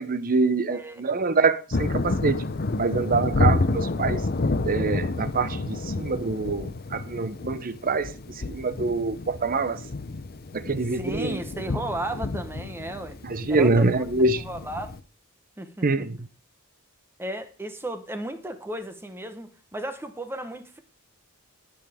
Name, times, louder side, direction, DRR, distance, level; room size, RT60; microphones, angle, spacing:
voice 1, 0.0-2.4 2.8-4.2 4.6-9.8 10.5-11.4 13.2-14.4 15.8-16.3, right 3 dB, 40° right, 0.7 m, -25 dB
voice 2, 0.7-1.0 10.9-13.2 13.5-13.9 14.4-14.9 15.6-16.1 17.2-20.8, right 1 dB, 10° right, 1.0 m, -34 dB
Thunder, 1.7-15.0, left 3 dB, 45° left, 0.7 m, -29 dB
18.0 x 6.8 x 3.5 m
head